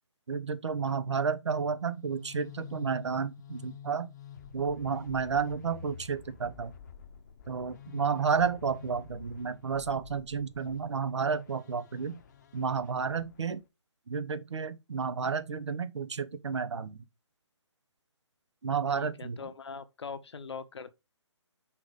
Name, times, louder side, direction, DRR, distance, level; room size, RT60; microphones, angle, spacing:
voice 1, 0.3-4.1 4.5-6.7 7.5-12.2 12.5-13.6 14.1-17.0 18.6-19.4, right 6 dB, 70° right, 1.0 m, -31 dB
sound 1, 1.8-13.6, left 8 dB, 35° left, 0.9 m, -50 dB
voice 2, 19.0-20.9, left 5 dB, 65° left, 1.0 m, -42 dB
6.1 x 3.9 x 4.8 m
hypercardioid pair, 155°, 15 cm